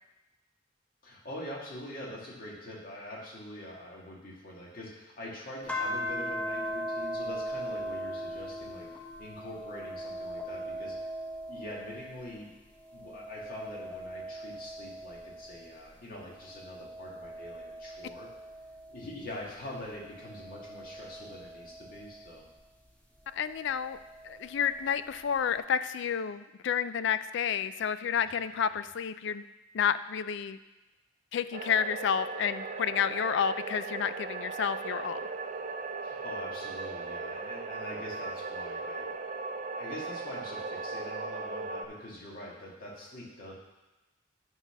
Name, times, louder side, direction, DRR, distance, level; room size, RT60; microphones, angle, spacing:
voice 1, 1.0-11.0 11.5-12.5 12.9-18.3 18.9-22.4 36.0-39.1 39.7-43.5, left 1 dB, 50° left, -4 dB, 2.1 m, -44 dB
sound 1, 5.7-12.4 12.9-15.7 16.3-19.1 19.9-22.3 23.7-24.7, equal, 10° left, 0.9 m, -39 dB
voice 2, 23.3-24.0 24.2-29.4 29.7-30.6 31.3-35.2, left 8 dB, 65° left, 13 dB, 0.4 m, -30 dB
sound 2, 31.5-41.9, right 4 dB, 40° right, 0.5 m, -38 dB
9.7 x 4.1 x 5.9 m, 1.1 s
head